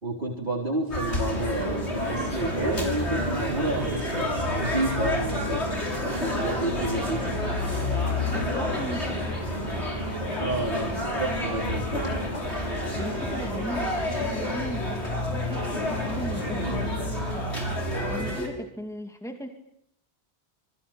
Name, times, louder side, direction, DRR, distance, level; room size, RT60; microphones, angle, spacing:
voice 1, 0.0-5.7 5.9-7.3 10.4-12.1, right 2 dB, 50° right, 0 dB, 4.2 m, -30 dB
sound 1, 0.9-18.5, left 1 dB, 85° left, 6.7 m, -32 dB
sound 2, 1.2-18.3, left 1 dB, 40° left, 7.0 m, -32 dB
voice 2, 8.3-9.3 12.9-17.5 18.1-19.5, equal, 5° left, 4 dB, 2.5 m, -37 dB
28.0 x 22.5 x 9.0 m, 0.75 s
omnidirectional pair, 1.1 m